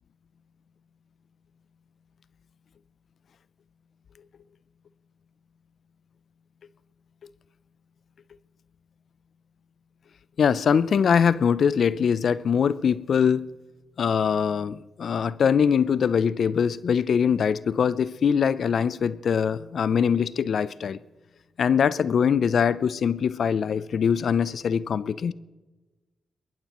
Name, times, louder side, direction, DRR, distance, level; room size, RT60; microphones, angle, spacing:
voice 1, 10.4-13.5 14.0-21.0 21.6-25.3, left 7 dB, 65° left, 0.4 m, -22 dB
22.5 x 20.0 x 3.0 m
supercardioid pair, 55°, 0 cm